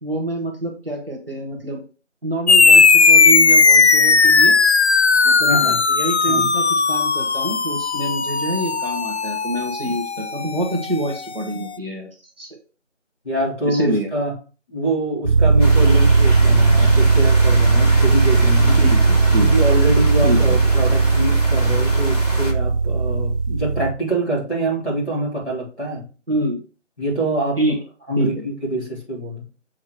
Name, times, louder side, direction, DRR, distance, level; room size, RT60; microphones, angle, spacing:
voice 1, 0.0-1.8 2.2-4.6 5.2-12.6 13.6-14.1 18.8-19.0 19.3-19.5 20.2-20.6 26.3-26.6 27.6-27.8 28.2-28.3, right 1 dB, 50° right, 1 dB, 1.9 m, -26 dB
sound 1, 2.5-11.4, left 4 dB, 60° left, 0.5 m, -16 dB
voice 2, 5.5-5.8 6.3-6.5 13.2-14.3 14.7-18.8 19.4-26.0 27.0-27.6 28.1-29.4, right 1 dB, ahead, -31 dB, 2.2 m, -25 dB
sound 2, 15.2-23.9, right 4 dB, 25° right, 1.8 m, -16 dB
sound 3, 15.6-22.5, left 1 dB, 30° left, 1.5 m, -29 dB
7.8 x 3.6 x 4.8 m, 0.35 s
figure-of-eight pair, 175°, 38 cm